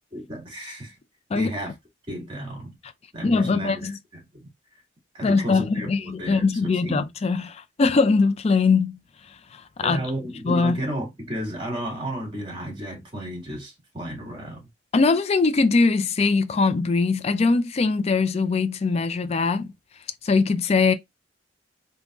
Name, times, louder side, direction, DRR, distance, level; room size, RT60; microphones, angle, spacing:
voice 1, 0.1-1.0 1.3-1.7 2.1-2.8 3.1-3.9 4.4-4.5 5.1-7.1 9.8-14.7, equal, 30° right, 1.9 m, -33 dB
voice 2, 3.2-4.0 5.2-9.0 9.8-10.0 10.4-10.8 14.9-19.7 20.2-20.9, left 4 dB, 35° left, 0.4 m, -21 dB
3.7 x 2.7 x 2.4 m
head